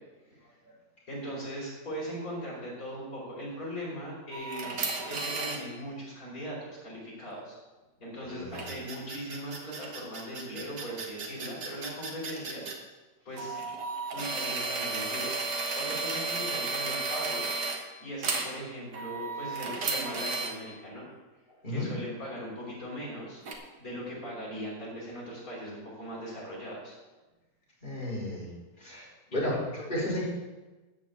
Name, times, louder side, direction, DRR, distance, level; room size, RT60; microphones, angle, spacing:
voice 1, 1.1-7.6 8.0-12.7 13.3-13.6 14.1-17.5 18.0-21.0 21.7-23.4 23.8-26.9, equal, 50° left, -5 dB, 5.3 m, -39 dB
sound 1, 4.3-5.6 8.5-12.7 13.4-17.8 18.2-18.5 18.9-20.5 23.5-23.6, right 3 dB, 70° right, 2.1 m, -33 dB
voice 2, 8.2-8.6 21.6-21.9 27.8-28.5 28.8-30.3, left 1 dB, 25° left, -7 dB, 4.5 m, -33 dB
13.5 x 5.5 x 8.1 m, 1.2 s
omnidirectional pair, 1.9 m